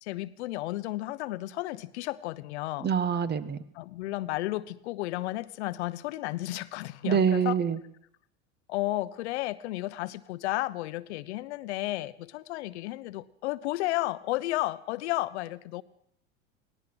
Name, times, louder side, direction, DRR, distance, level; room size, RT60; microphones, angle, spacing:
voice 1, 0.0-2.9 3.7-7.6 8.7-15.8, left 17 dB, 75° left, 15 dB, 1.0 m, -33 dB
voice 2, 2.8-3.6 7.0-7.8, right 7 dB, 30° right, 14 dB, 1.7 m, -25 dB
18.5 x 17.5 x 7.9 m, 0.69 s
hypercardioid pair, 100°, 34 cm